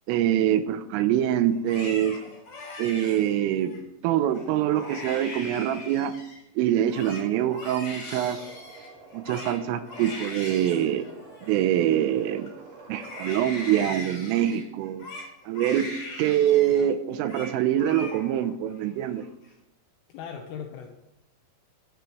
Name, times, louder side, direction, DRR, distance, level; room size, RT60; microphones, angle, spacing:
voice 1, 0.1-2.2 2.8-3.8 4.0-6.1 6.6-8.4 9.1-11.1 11.4-12.5 12.9-15.1 15.5-15.9 16.2-19.2, right 11 dB, 85° right, 10 dB, 3.4 m, -24 dB
Crying sobbing, 1.5-3.8 4.3-4.4 4.7-6.4 6.7-12.5 12.9-16.9 17.1-17.5 17.8-18.5 18.8-19.5, left 2 dB, 45° left, 7.0 m, -41 dB
sound 1, 8.1-13.9, right 4 dB, 50° right, 2.0 m, -48 dB
voice 2, 20.1-20.9, left 7 dB, 75° left, 3 dB, 3.7 m, -39 dB
22.0 x 16.0 x 3.3 m, 0.85 s
omnidirectional pair, 5.9 m